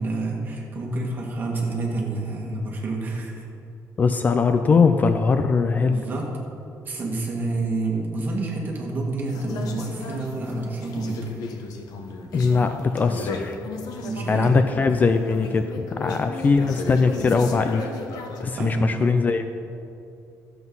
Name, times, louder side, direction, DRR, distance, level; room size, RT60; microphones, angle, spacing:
voice 1, 0.0-3.5 5.9-6.3 6.8-11.3 14.0-14.5 18.5-19.0, right 3 dB, 30° right, -2 dB, 2.0 m, -28 dB
voice 2, 4.0-6.0 12.3-13.6 14.3-17.9 18.4-19.5, left 4 dB, 25° left, 8 dB, 0.4 m, -21 dB
sound 1, 9.2-18.4, left 4 dB, 75° left, 1.1 m, -35 dB
13.0 x 8.0 x 5.5 m, 2.6 s
cardioid pair, 165°, 6 cm